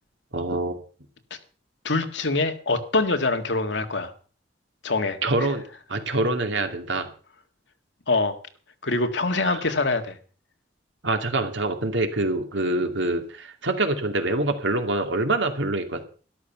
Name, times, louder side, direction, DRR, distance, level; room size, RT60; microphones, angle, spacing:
voice 1, 0.3-0.8 5.2-5.6 5.9-7.1 9.4-9.6 11.0-16.0, right 2 dB, 85° right, 6 dB, 2.5 m, -25 dB
voice 2, 1.8-4.1 4.8-5.2 8.1-8.4 8.8-10.2, left 3 dB, 75° left, 7 dB, 1.8 m, -24 dB
13.0 x 12.0 x 5.8 m, 0.40 s
head